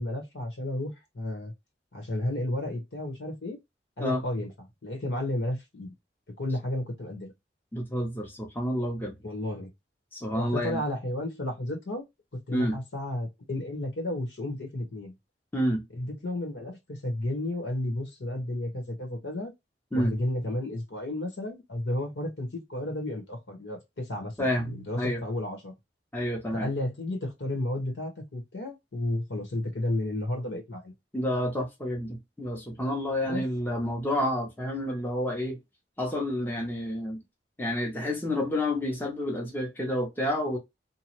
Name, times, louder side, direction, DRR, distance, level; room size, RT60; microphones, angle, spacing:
voice 1, 0.0-1.5 1.9-3.6 4.0-4.5 4.8-5.9 6.4-7.3 9.2-9.7 10.3-12.0 12.5-15.1 15.9-19.5 19.9-25.7 26.5-30.9 33.2-33.5, left 1 dB, 75° left, 1.2 m, -32 dB
voice 2, 7.7-9.2 10.1-10.8 12.5-12.8 15.5-15.8 19.9-20.1 24.4-25.2 26.1-26.7 31.1-35.6 36.0-37.2 37.6-40.6, left 1 dB, 10° left, 0.7 m, -29 dB
2.8 x 2.2 x 2.9 m
head